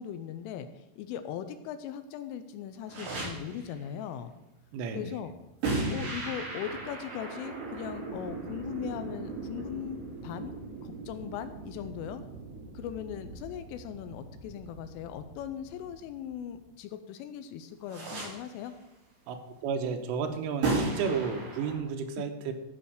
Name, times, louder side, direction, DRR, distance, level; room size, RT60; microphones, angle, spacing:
voice 1, 0.0-4.3 4.9-5.3 5.9-12.2 12.7-18.7, left 9 dB, 85° left, 10 dB, 3.2 m, -39 dB
sound 1, 2.9-3.8 5.6-16.5 17.9-18.7 20.6-21.8, right 3 dB, 45° right, 6.5 m, -37 dB
voice 2, 4.7-5.1 19.3-22.5, right 6 dB, 85° right, 5 dB, 3.6 m, -32 dB
15.0 x 5.5 x 6.5 m, 0.93 s
omnidirectional pair, 5.7 m